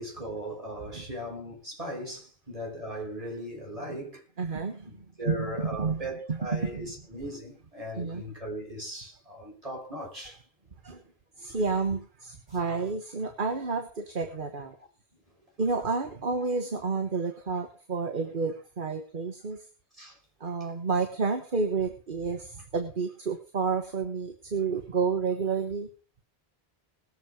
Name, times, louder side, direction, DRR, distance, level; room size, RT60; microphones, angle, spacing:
voice 1, 0.0-4.6 4.8-10.4 12.5-12.8 20.0-20.2, equal, 35° right, 5.8 m, -38 dB
voice 2, 4.4-4.9 5.2-6.0 6.3-6.9 8.0-8.2 10.8-11.0 11.4-14.7 15.6-19.6 20.4-25.9, right 4 dB, 55° right, 1.5 m, -30 dB
20.0 x 7.3 x 5.1 m
omnidirectional pair, 1.1 m